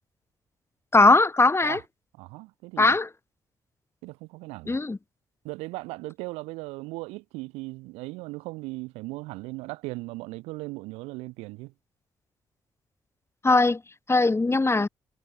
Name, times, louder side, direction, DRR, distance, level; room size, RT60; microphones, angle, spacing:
voice 1, 0.9-1.8 2.8-3.1 4.7-5.0 13.4-13.8 14.1-14.9, left 3 dB, 25° left, 1.7 m, -20 dB
voice 2, 2.2-3.0 4.0-4.8 5.4-11.7, right 23 dB, 85° right, 7.8 m, -38 dB
hypercardioid pair, 45°, 10 cm